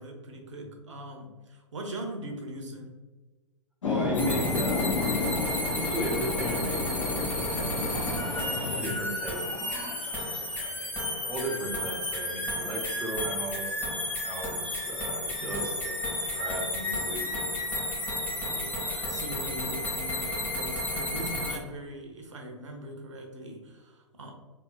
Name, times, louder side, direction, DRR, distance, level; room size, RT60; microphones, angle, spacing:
voice 1, 0.0-2.9 8.6-9.1 15.4-15.6 18.4-24.3, right 1 dB, 70° right, 2 dB, 0.9 m, -41 dB
sound 1, 3.8-8.8, left 3 dB, 70° left, 0.8 m, -31 dB
voice 2, 3.8-5.1 5.7-7.8 8.7-10.9 11.2-14.0 14.2-17.3, right 1 dB, 5° right, -1 dB, 0.8 m, -37 dB
sound 2, 4.1-21.6, left 1 dB, 10° left, 1.4 m, -32 dB
sound 3, 7.4-8.6 9.2-10.8, right 2 dB, 30° right, 1.3 m, -45 dB
4.4 x 3.5 x 2.3 m, 1.3 s
figure-of-eight pair, 105°, 16 cm